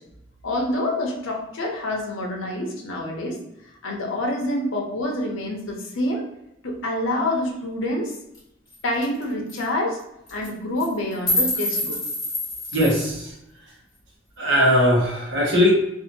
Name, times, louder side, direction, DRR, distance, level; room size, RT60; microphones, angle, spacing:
voice 1, 0.4-3.4 3.8-6.2 6.6-8.1 8.8-10.0 10.3-12.0, left 1 dB, 80° left, 1 dB, 0.7 m, -27 dB
sound 1, 8.3-8.4 8.7-8.8 9.0-9.2 9.5-9.6 10.3-10.5 10.8-13.1, left 1 dB, 20° left, 0.9 m, -26 dB
voice 2, 12.7-13.2 14.4-15.7, equal, 65° right, -2 dB, 0.9 m, -19 dB
2.7 x 2.5 x 2.6 m, 0.84 s
head